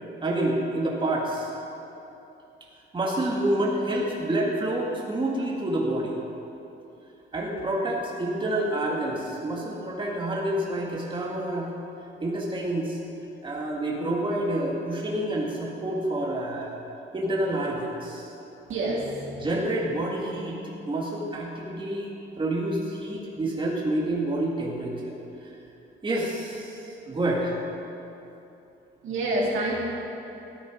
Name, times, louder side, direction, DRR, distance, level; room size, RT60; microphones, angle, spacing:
voice 1, 0.2-1.5 2.9-6.2 7.3-11.7 12.2-13.0 13.4-16.8 17.1-18.3 19.4-20.6 20.9-22.1 22.4-25.1 25.4-25.5 26.0-27.5, right 1 dB, 25° right, -3 dB, 1.9 m, -28 dB
voice 2, 18.7-19.5 29.0-29.7, right 1 dB, 75° right, -5 dB, 2.7 m, -27 dB
13.5 x 9.0 x 5.1 m, 2.9 s
cardioid pair, 90°, 20 cm